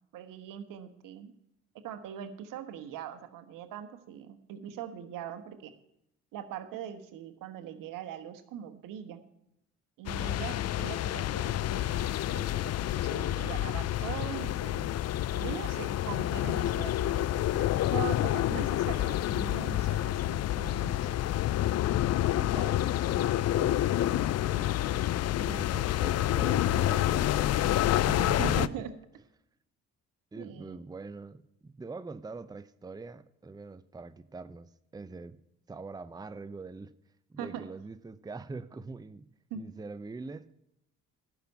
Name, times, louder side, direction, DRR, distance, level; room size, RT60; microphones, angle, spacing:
voice 1, 0.1-1.3 1.8-5.7 6.3-9.2 10.0-14.9 15.3-21.2 24.6-24.8 28.2-28.9 30.4-30.8 37.4-37.7 39.5-39.7, right 9 dB, 75° right, 9 dB, 1.3 m, -41 dB
sound 1, 10.1-28.7, left 13 dB, 50° left, 0.5 m, -28 dB
voice 2, 22.3-25.1 25.4-27.8 28.1-28.9 30.3-35.4 35.7-36.9 37.3-40.5, right 3 dB, 10° right, 14 dB, 0.6 m, -43 dB
12.0 x 6.0 x 9.1 m, 0.82 s
hypercardioid pair, 55°, 33 cm